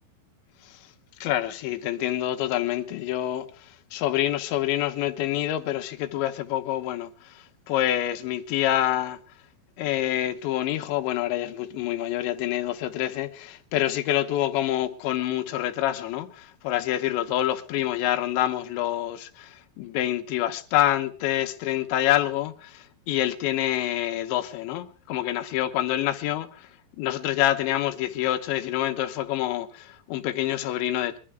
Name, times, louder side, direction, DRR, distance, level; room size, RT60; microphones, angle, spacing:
voice 1, 1.2-9.2 9.8-26.7 27.0-31.2, left 13 dB, 80° left, 3.2 m, -27 dB
22.5 x 12.5 x 3.5 m
omnidirectional pair, 5.3 m